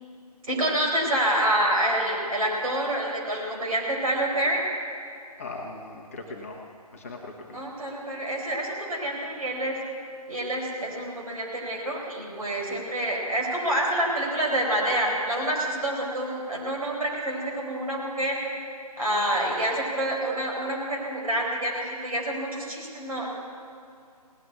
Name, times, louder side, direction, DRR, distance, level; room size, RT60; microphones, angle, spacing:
voice 1, 0.5-4.6 7.5-9.8 10.3-18.4 19.0-23.3, right 1 dB, 60° right, -1 dB, 4.5 m, -27 dB
voice 2, 5.4-6.6 6.9-7.6, left 2 dB, 20° left, 0 dB, 0.9 m, -39 dB
17.5 x 7.7 x 9.2 m, 2.3 s
figure-of-eight pair, 155°, 20 cm